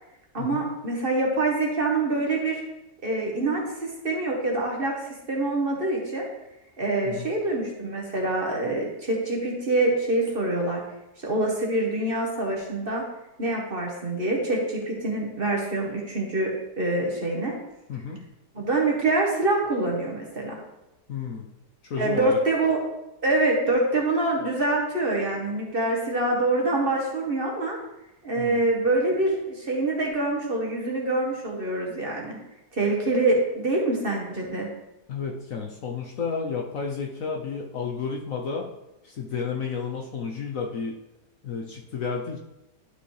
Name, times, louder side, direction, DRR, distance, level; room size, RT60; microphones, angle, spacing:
voice 1, 0.3-2.6 3.0-6.3 6.8-10.8 11.2-13.0 13.4-16.5 16.8-17.6 18.5-20.6 22.0-22.8 23.2-27.8 28.2-32.4 32.7-34.7, right 2 dB, 35° right, -1 dB, 1.4 m, -25 dB
voice 2, 21.1-21.5 21.8-22.4 28.4-28.6 35.1-38.7 39.0-41.0 41.4-42.4, left 5 dB, 60° left, 0 dB, 1.1 m, -31 dB
11.5 x 4.9 x 3.3 m, 0.91 s
omnidirectional pair, 1.8 m